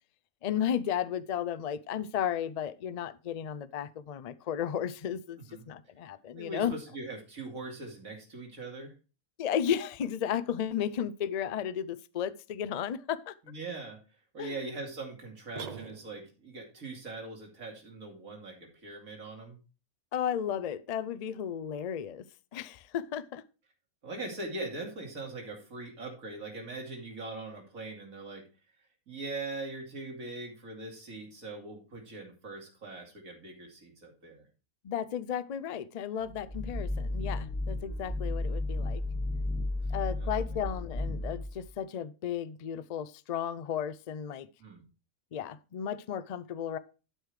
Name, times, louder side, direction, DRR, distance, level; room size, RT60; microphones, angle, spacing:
voice 1, 0.4-5.4 5.7-6.7 9.4-13.3 14.4-14.5 20.1-22.2 22.5-23.4 34.8-39.0 39.9-44.5 45.3-46.8, left 9 dB, 80° left, 0.3 m, -34 dB
voice 2, 6.4-8.9 13.4-14.0 14.3-19.6 24.0-28.4 29.1-34.5 39.8-40.3 44.6-44.8, right 2 dB, 70° right, 3.0 m, -41 dB
sound 1, 15.6-16.5, right 5 dB, 50° right, 0.5 m, -42 dB
sound 2, 36.2-41.7, left 2 dB, 10° left, 0.7 m, -33 dB
12.0 x 5.0 x 4.8 m
omnidirectional pair, 1.5 m